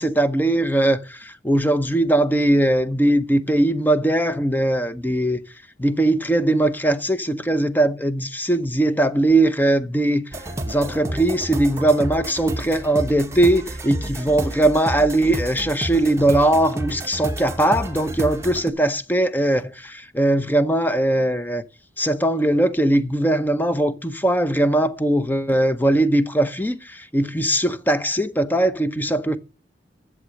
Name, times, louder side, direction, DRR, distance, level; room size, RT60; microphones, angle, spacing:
voice 1, 0.0-5.4 5.8-10.2 10.7-21.6 22.0-29.4, right 1 dB, 10° left, 0.7 m, -20 dB
sound 1, 10.3-18.7, right 1 dB, 15° right, 1.0 m, -30 dB
11.5 x 7.4 x 6.4 m
head